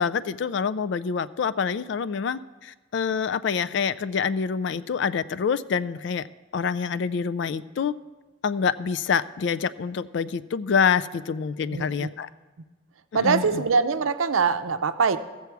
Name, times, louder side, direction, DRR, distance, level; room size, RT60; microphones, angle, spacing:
voice 1, 0.0-6.3 6.5-8.0 8.4-12.3 13.1-13.6, left 6 dB, 60° left, 15 dB, 0.3 m, -26 dB
voice 2, 11.7-12.1 13.1-15.2, right 5 dB, 85° right, 10 dB, 0.6 m, -23 dB
15.5 x 7.0 x 4.6 m, 1.2 s
head